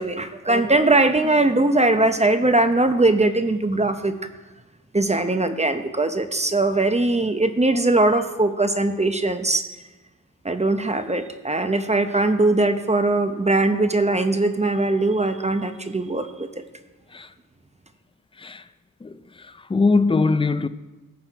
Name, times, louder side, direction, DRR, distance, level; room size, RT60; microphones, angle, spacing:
voice 1, 0.0-4.1 4.9-9.7 10.4-16.5, right 2 dB, 20° right, 0.7 m, -20 dB
voice 2, 19.0-20.7, left 3 dB, 15° left, 0.4 m, -22 dB
16.0 x 5.7 x 4.5 m
wide cardioid pair, 90°, 33 cm